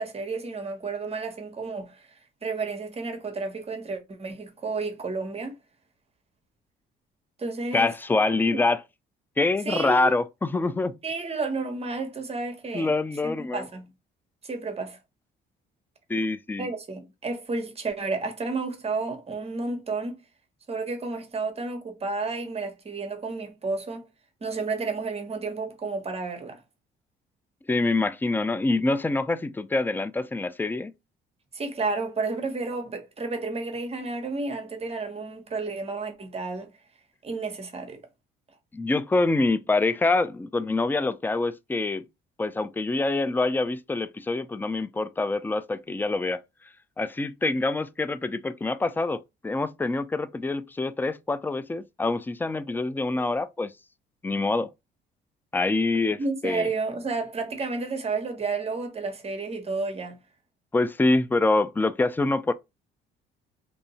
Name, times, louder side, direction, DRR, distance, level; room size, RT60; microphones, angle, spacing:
voice 1, 0.0-2.1 2.4-5.6 7.4-7.9 8.5-8.6 9.6-10.2 11.0-12.9 13.2-13.9 14.4-15.0 16.6-20.2 20.7-24.1 24.4-26.6 31.5-36.7 37.2-38.0 56.1-60.2, right 3 dB, 30° right, 1.1 m, -31 dB
voice 2, 7.7-8.8 9.4-11.0 12.7-13.7 16.1-16.7 27.7-30.9 38.7-42.1 42.4-46.4 47.0-53.7 54.2-54.7 55.5-56.7 60.7-62.5, left 3 dB, 10° left, 0.3 m, -25 dB
2.7 x 2.6 x 4.1 m
cardioid pair, 90°, 20 cm